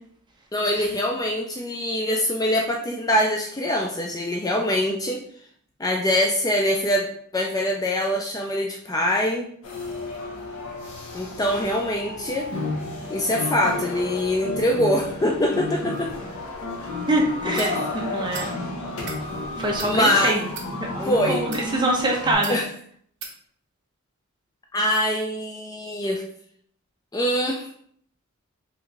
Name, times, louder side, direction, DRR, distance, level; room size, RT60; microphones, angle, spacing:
voice 1, 0.5-5.2 5.8-9.4 11.1-12.5 13.1-16.1 17.6-17.8 19.8-20.4 21.0-21.4 22.5-22.7 24.7-26.2 27.1-27.7, left 1 dB, 15° left, 1 dB, 0.4 m, -23 dB
sound 1, 9.6-22.3, left 2 dB, 75° left, 1.0 m, -32 dB
voice 2, 17.1-17.8 18.1-18.5 19.6-20.4 20.9-22.6, right 1 dB, 20° right, -1 dB, 0.9 m, -24 dB
sound 2, 17.5-17.7 18.3-18.5 18.9-19.2 19.8-19.9 20.5-20.7 21.4-21.7 22.4-22.6 23.2-23.3, right 5 dB, 55° right, 0.9 m, -36 dB
4.5 x 3.3 x 3.2 m, 0.62 s
head